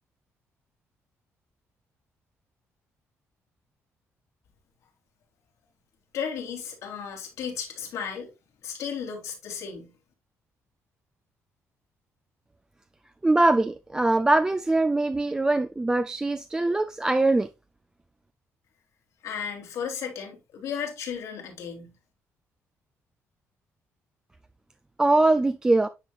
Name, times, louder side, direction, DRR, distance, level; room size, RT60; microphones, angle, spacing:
voice 1, 6.1-8.3 8.6-9.9 19.2-21.9, left 7 dB, 85° left, 2.9 m, -34 dB
voice 2, 13.2-17.5 25.0-25.9, right 2 dB, 15° right, 0.3 m, -22 dB
9.7 x 4.7 x 2.4 m
cardioid pair, 125°, 5 cm